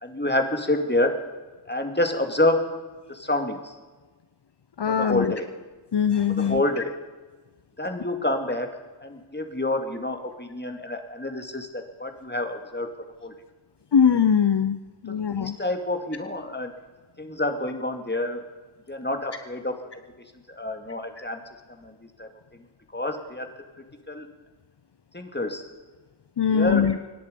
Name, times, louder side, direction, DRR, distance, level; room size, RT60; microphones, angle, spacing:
voice 1, 0.0-1.1 1.7-2.7 3.1-3.8 5.0-5.5 6.3-7.0 7.8-8.7 9.0-12.9 13.2-13.3 15.3-16.7 17.2-18.4 18.9-19.8 20.5-21.4 21.8-21.9 22.2-22.6 22.9-23.5 24.1-24.3 25.1-25.7 26.5-26.9, left 1 dB, 20° left, 5 dB, 2.3 m, -28 dB
voice 2, 4.8-5.3 5.9-6.8 13.9-15.6 21.2-21.3 26.4-27.0, left 7 dB, 55° left, 11 dB, 0.7 m, -22 dB
25.0 x 10.5 x 5.3 m, 1.3 s
wide cardioid pair, 40°, 48 cm